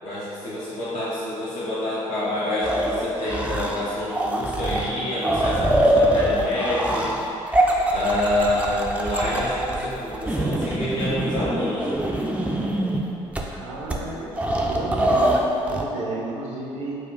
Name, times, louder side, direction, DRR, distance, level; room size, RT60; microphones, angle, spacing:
voice 1, 0.0-11.9, left 1 dB, 55° left, -10 dB, 0.9 m, -27 dB
sound 1, 2.6-3.8 4.1-13.0 13.3-13.4 13.9-14.0 14.3-15.8, right 1 dB, 10° right, 0.5 m, -23 dB
voice 2, 13.6-14.3 14.6-16.9, right 2 dB, 70° right, -4 dB, 0.7 m, -32 dB
4.5 x 2.4 x 4.6 m, 2.9 s
figure-of-eight pair, 45°, 16 cm